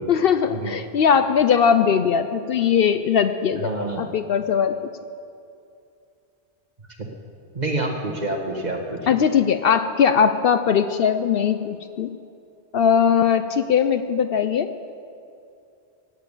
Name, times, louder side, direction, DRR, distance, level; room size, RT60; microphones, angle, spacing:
voice 1, 0.1-4.8 9.1-12.1 12.7-14.7, left 7 dB, 65° left, 10 dB, 0.7 m, -20 dB
voice 2, 3.6-4.0 7.5-9.0, right 2 dB, 40° right, 1 dB, 1.7 m, -27 dB
15.0 x 9.1 x 8.3 m, 2.6 s
omnidirectional pair, 1.1 m